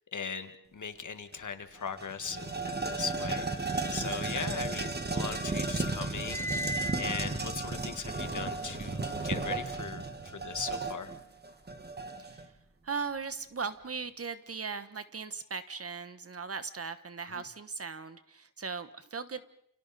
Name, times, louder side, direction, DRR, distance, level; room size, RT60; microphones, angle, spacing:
voice 1, 0.1-6.7 7.0-11.1 17.3-17.4, left 6 dB, 65° left, 9 dB, 1.7 m, -39 dB
sound 1, 1.3-1.4 1.8-12.5, right 3 dB, 30° right, 1.7 m, -34 dB
sound 2, 6.3-9.0, equal, 10° left, 1.0 m, -39 dB
voice 2, 12.8-19.5, right 5 dB, 45° right, 11 dB, 1.2 m, -38 dB
29.5 x 28.5 x 4.2 m, 0.68 s
wide cardioid pair, 135°, 32 cm